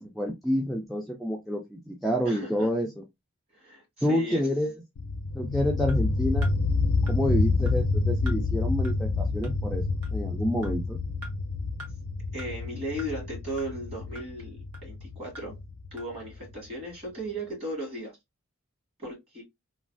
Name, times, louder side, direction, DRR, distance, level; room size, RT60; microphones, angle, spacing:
voice 1, 0.0-2.9 4.0-4.7 5.3-6.5 7.0-9.8 10.1-11.0, equal, ahead, 0.4 m, -28 dB
voice 2, 2.3-2.7 3.5-4.5 12.3-15.6 15.9-18.2 19.0-19.4, right 1 dB, 25° right, 1.8 m, -36 dB
sound 1, 5.0-16.5, left 3 dB, 75° left, 0.5 m, -28 dB
sound 2, 5.9-6.0 6.4-6.5 7.1-7.2 7.7-7.8 8.3-8.4 8.8-8.9 9.4-9.5 10.0-10.1 10.6-10.7 11.2-11.3 11.8-11.9 12.4-12.5 13.0-13.1 13.6-13.7 14.1-14.3 14.7-14.8 15.3-15.4 16.0-16.1, equal, 70° right, 1.2 m, -43 dB
3.1 x 2.3 x 2.4 m
head